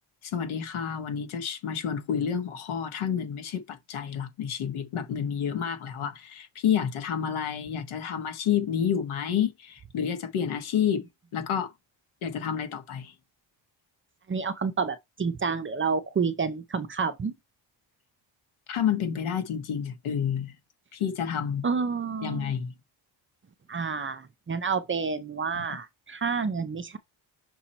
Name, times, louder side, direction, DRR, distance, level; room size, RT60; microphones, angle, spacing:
voice 1, 0.2-11.0 11.3-11.7 12.2-13.1 18.7-20.5 20.9-21.6 22.2-22.7, left 8 dB, 85° left, 1.5 m, -29 dB
voice 2, 14.3-17.3 21.6-22.5 23.7-27.0, right 5 dB, 25° right, 0.6 m, -29 dB
6.1 x 4.4 x 4.3 m
cardioid pair, 165°, 48 cm